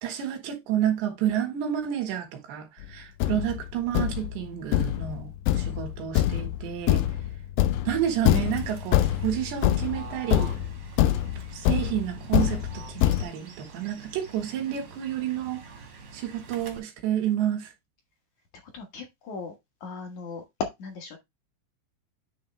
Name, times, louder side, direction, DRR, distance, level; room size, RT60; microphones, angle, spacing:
voice 1, 0.0-7.0 7.9-10.6 11.5-15.6 16.1-17.7, right 10 dB, 85° right, 3.9 m, -30 dB
Thump thud, 2.8-2.9 3.2-13.2, left 13 dB, 85° left, 2.1 m, -25 dB
Fowl / Bird, 8.5-16.8, right 4 dB, 55° right, 1.3 m, -45 dB
voice 2, 18.7-19.6 19.8-21.2, left 4 dB, 60° left, 2.2 m, -36 dB
9.6 x 3.6 x 3.3 m
omnidirectional pair, 4.9 m